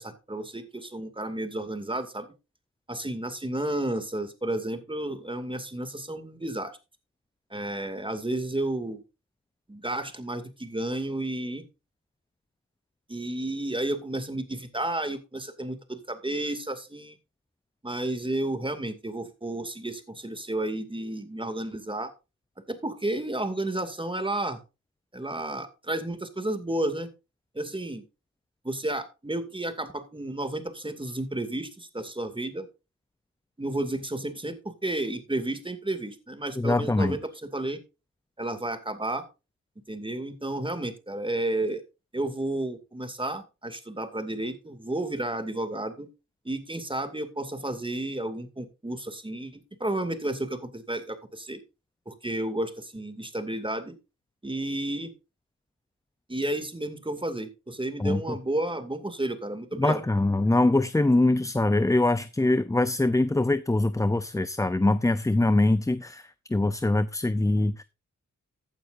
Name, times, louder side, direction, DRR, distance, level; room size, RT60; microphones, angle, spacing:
voice 1, 0.0-2.3 2.9-6.7 7.5-9.0 9.7-11.6 13.1-17.2 17.8-22.1 22.7-24.6 25.1-27.1 27.5-28.0 28.6-32.7 33.6-37.8 38.4-39.3 39.9-41.8 42.1-46.1 46.4-51.6 52.1-54.0 54.4-55.1 56.3-60.0, right 1 dB, 15° right, 2.4 m, -32 dB
voice 2, 36.6-37.2 58.0-58.2 59.8-67.8, left 2 dB, 10° left, 0.5 m, -23 dB
15.0 x 9.1 x 2.6 m
cardioid pair, 65°, 32 cm